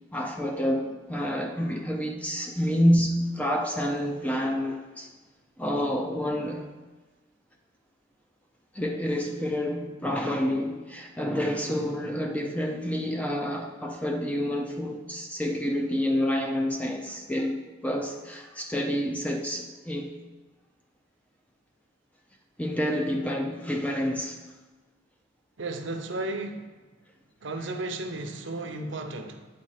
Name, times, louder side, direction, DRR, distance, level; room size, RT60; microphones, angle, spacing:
voice 1, 0.1-5.1 5.6-6.7 8.7-20.1 22.6-24.4, equal, 5° left, 2 dB, 0.5 m, -28 dB
voice 2, 25.6-26.7 27.4-29.5, right 2 dB, 65° right, 5 dB, 0.7 m, -34 dB
8.2 x 4.2 x 4.9 m, 1.3 s
head